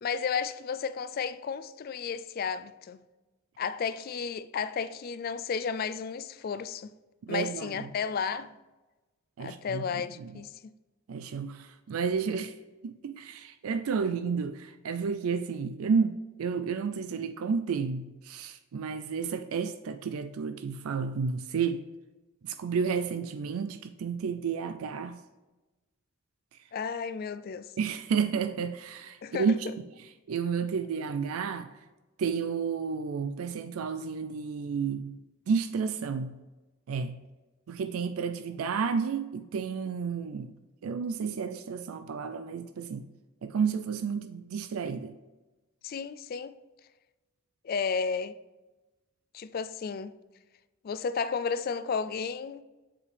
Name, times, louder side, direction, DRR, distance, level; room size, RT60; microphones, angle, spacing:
voice 1, 0.0-3.0 3.6-6.9 7.3-8.5 9.4-10.7 26.7-27.7 29.2-29.7 45.8-46.5 47.6-48.4 49.3-50.1 50.8-52.6, left 6 dB, 45° left, 0.3 m, -33 dB
voice 2, 7.3-7.8 9.4-9.8 10.2-10.3 11.1-12.5 12.8-21.8 22.4-25.2 27.8-29.6 30.3-31.7 32.2-35.1 35.5-36.3 36.9-37.2 37.7-40.5 40.8-43.1 43.4-45.1, right 6 dB, 85° right, 0.4 m, -31 dB
7.2 x 4.8 x 3.3 m
head